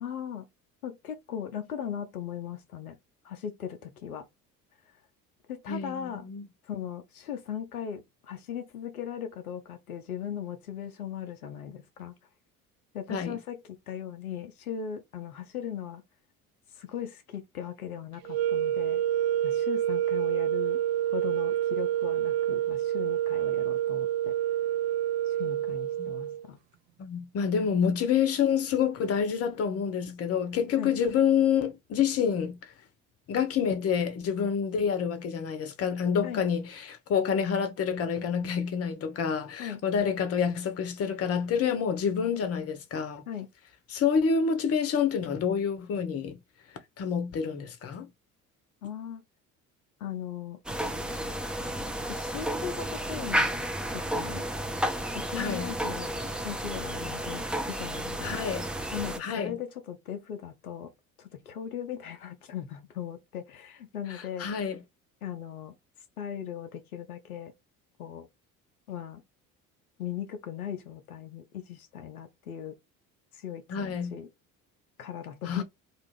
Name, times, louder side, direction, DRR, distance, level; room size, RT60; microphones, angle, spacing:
voice 1, 0.0-0.5 0.8-3.0 3.2-4.3 5.5-6.3 6.6-12.1 12.9-13.6 13.9-16.0 16.7-19.0 19.4-20.8 21.1-24.4 25.3-26.6 30.8-30.9 36.2-36.4 39.6-39.8 43.3-43.5 48.8-49.2 50.0-50.6 52.1-53.5 53.9-54.5 55.1-56.1 56.4-58.4 58.9-60.9 61.2-64.5 65.2-65.7 66.2-67.5 68.0-68.3 68.9-69.2 70.0-72.8 73.3-74.3 75.0-75.6, left 9 dB, 85° left, 0.5 m, -38 dB
voice 2, 5.7-6.5 13.1-13.4 26.0-26.1 27.0-32.6 33.3-43.2 43.9-46.4 47.0-48.1 55.4-55.7 58.2-58.7 59.2-59.5 64.1-64.8 73.7-74.2 75.5-75.6, left 7 dB, 35° left, 0.7 m, -28 dB
sound 1, 18.2-26.4, right 12 dB, 65° right, 0.5 m, -28 dB
sound 2, 50.7-59.2, right 1 dB, ahead, 0.4 m, -32 dB
2.4 x 2.3 x 3.1 m
figure-of-eight pair, 55°, 43 cm